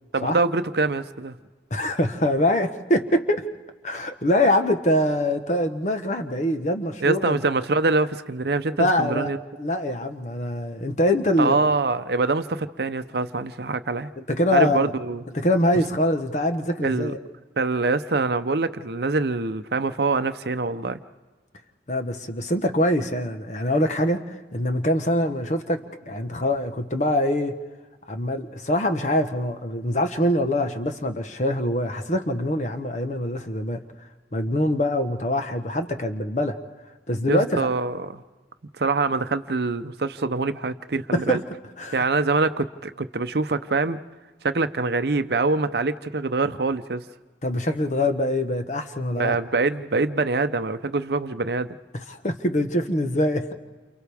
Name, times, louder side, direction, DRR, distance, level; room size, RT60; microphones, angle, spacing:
voice 1, 0.1-1.4 7.0-9.4 11.4-14.1 14.5-15.2 16.8-17.1 17.6-21.0 37.3-38.2 38.8-41.4 41.9-44.0 44.4-47.0 49.1-51.7, right 3 dB, 60° right, 11 dB, 0.7 m, -24 dB
voice 2, 1.7-3.4 3.8-7.4 8.8-9.3 9.6-11.6 14.2-14.9 15.3-17.2 21.9-24.2 24.5-27.6 28.1-33.8 34.3-36.6 37.1-37.7 41.1-41.4 41.8-42.0 47.4-49.4 51.9-53.5, left 1 dB, 40° left, 7 dB, 1.1 m, -24 dB
29.0 x 28.5 x 3.5 m, 1.3 s
head